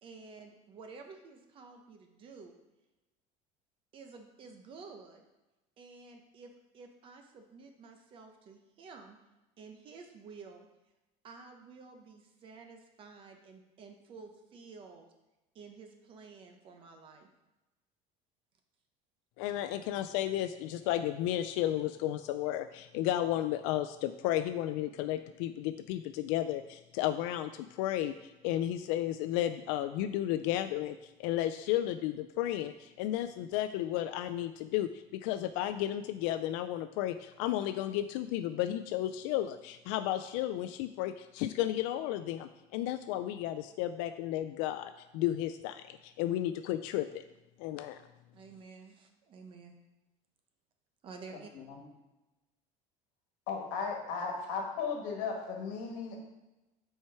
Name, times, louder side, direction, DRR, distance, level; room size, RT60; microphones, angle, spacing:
voice 1, 0.0-2.5 3.9-5.2 5.8-9.2 9.6-10.7 11.2-15.1 15.5-17.3 46.2-46.4 48.3-49.8 51.0-51.5, right 4 dB, 35° right, 4 dB, 0.9 m, -51 dB
voice 2, 19.4-47.2 47.6-48.0, left 13 dB, 80° left, 10 dB, 0.4 m, -33 dB
voice 3, 53.5-56.3, left 5 dB, 65° left, 1 dB, 1.7 m, -36 dB
7.5 x 4.5 x 4.6 m, 1.0 s
cardioid pair, 165°, 16 cm